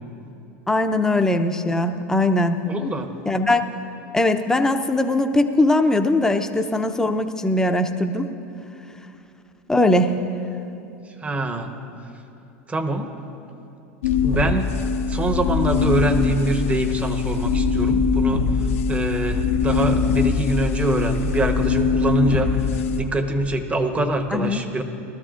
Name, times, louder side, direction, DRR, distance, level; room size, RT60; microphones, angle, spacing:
voice 1, 0.7-2.6 3.3-3.6 4.1-8.3 9.7-10.2 24.3-24.6, left 2 dB, 10° left, 6 dB, 0.6 m, -20 dB
voice 2, 2.6-3.1 11.2-11.7 12.7-13.1 14.2-14.7 15.1-18.5 18.9-24.8, right 2 dB, 20° right, 6 dB, 1.0 m, -24 dB
sound 1, 14.0-23.0, left 5 dB, 80° left, 0.8 m, -22 dB
19.5 x 13.0 x 2.5 m, 2.7 s
hypercardioid pair, 105°, 7 cm